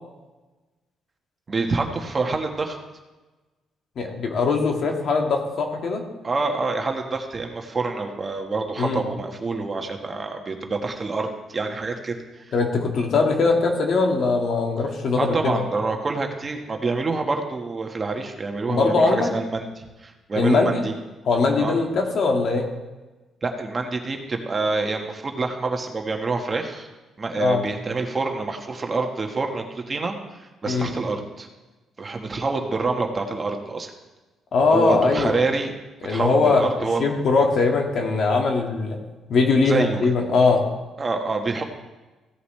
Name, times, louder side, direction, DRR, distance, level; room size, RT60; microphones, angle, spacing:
voice 1, 1.5-2.8 6.2-12.4 15.2-21.0 21.6-21.8 23.4-26.9 27.2-31.5 32.0-33.9 34.7-35.7 36.1-37.2 39.7-40.1 41.0-41.6, right 3 dB, 30° right, 3 dB, 1.4 m, -27 dB
voice 2, 4.0-6.0 8.8-9.0 12.5-15.6 18.7-19.3 20.4-20.9 21.3-22.7 27.3-27.7 30.7-30.9 34.5-35.4 36.0-39.0 39.3-40.7, left 4 dB, 60° left, 2 dB, 1.9 m, -21 dB
16.0 x 8.1 x 3.3 m, 1.2 s
cardioid pair, 90°, 0 cm